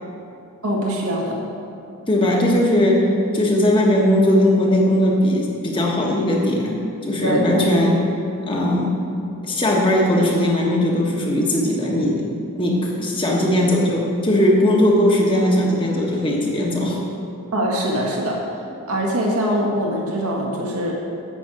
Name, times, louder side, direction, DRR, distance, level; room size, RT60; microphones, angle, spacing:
voice 1, 0.6-1.4 7.2-7.9 17.5-18.4 18.9-20.9, equal, 80° right, -2 dB, 1.8 m, -23 dB
voice 2, 2.1-3.1 3.3-6.8 7.1-8.0 8.4-8.9 9.4-12.2 12.5-17.0, left 1 dB, 20° left, -2 dB, 1.4 m, -18 dB
9.2 x 6.3 x 7.6 m, 2.6 s
head